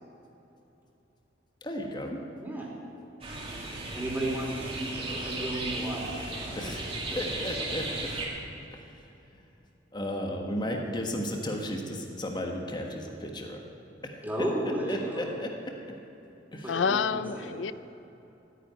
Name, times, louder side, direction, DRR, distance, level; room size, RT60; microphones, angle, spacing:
voice 1, 1.6-2.2 3.4-3.5 6.6-8.1 8.7-8.8 9.3-9.5 9.9-13.6 14.0-14.3 14.9-15.5 16.5-16.8, left 1 dB, 25° left, 1 dB, 1.4 m, -34 dB
sound 1, 3.2-8.3, right 2 dB, 35° right, 2.7 m, -36 dB
voice 2, 3.9-6.8 7.1-7.2 7.7-7.9 14.2-15.2 16.6-17.6, right 1 dB, 10° right, -4 dB, 3.3 m, -33 dB
voice 3, 16.7-17.7, left 6 dB, 85° left, 15 dB, 0.5 m, -28 dB
13.5 x 9.7 x 9.2 m, 2.9 s
head